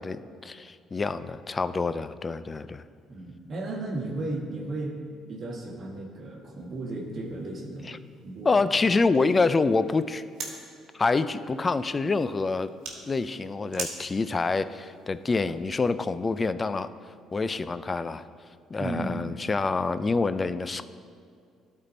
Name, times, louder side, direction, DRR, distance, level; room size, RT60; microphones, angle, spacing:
voice 1, 0.0-2.8 7.8-8.0 8.4-10.2 10.9-12.7 13.1-16.9 17.3-18.2 18.7-20.9, left 3 dB, 30° left, 14 dB, 0.4 m, -26 dB
voice 2, 3.1-5.0 5.3-8.0 8.2-8.5 8.7-8.8 18.8-19.2, right 2 dB, 50° right, 0 dB, 1.4 m, -34 dB
sound 1, 6.6-15.9, right 4 dB, 75° right, 1.3 m, -45 dB
12.5 x 4.3 x 4.2 m, 2.3 s
hypercardioid pair, 60°, 0 cm